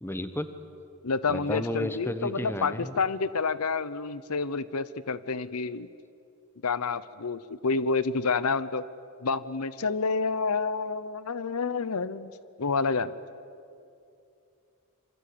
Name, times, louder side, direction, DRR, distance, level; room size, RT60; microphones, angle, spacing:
voice 1, 0.0-0.5 1.3-2.9, left 1 dB, 10° left, 10 dB, 1.2 m, -32 dB
voice 2, 1.0-5.9 6.6-8.8 9.2-12.3 12.6-13.1, left 4 dB, 85° left, 16 dB, 0.8 m, -29 dB
27.0 x 25.0 x 8.7 m, 2.5 s
head